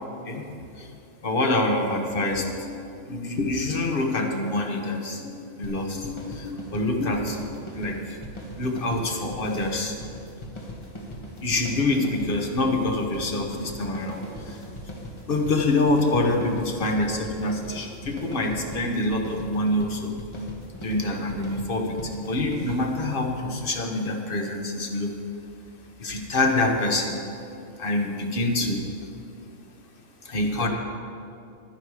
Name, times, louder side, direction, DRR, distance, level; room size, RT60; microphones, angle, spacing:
voice 1, 0.3-0.9 1.2-2.8 3.0-7.4 7.7-8.2 8.6-10.0 11.4-14.6 15.3-20.2 20.8-25.1 26.0-27.2 27.8-28.9 30.2-30.7, left 2 dB, 45° left, 3 dB, 1.2 m, -26 dB
sound 1, 5.6-23.1, equal, 25° left, 1.3 m, -40 dB
10.5 x 10.5 x 4.9 m, 2.5 s
omnidirectional pair, 1.3 m